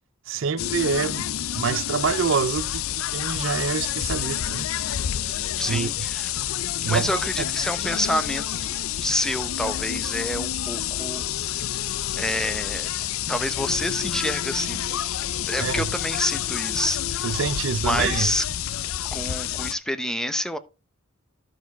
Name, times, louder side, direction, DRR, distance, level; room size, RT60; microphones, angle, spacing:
voice 1, 0.3-1.3 1.5-2.8 3.1-4.7 5.7-5.9 6.8-7.5 15.6-15.9 17.2-18.3, right 6 dB, 65° right, 0.5 m, -26 dB
sound 1, 0.6-19.7, left 11 dB, 85° left, 0.5 m, -28 dB
voice 2, 5.6-6.3 6.8-11.9 12.2-12.9 13.3-14.8 15.5-17.4 17.9-18.4 19.1-20.6, equal, 5° left, 0.7 m, -28 dB
13.5 x 4.8 x 4.6 m
head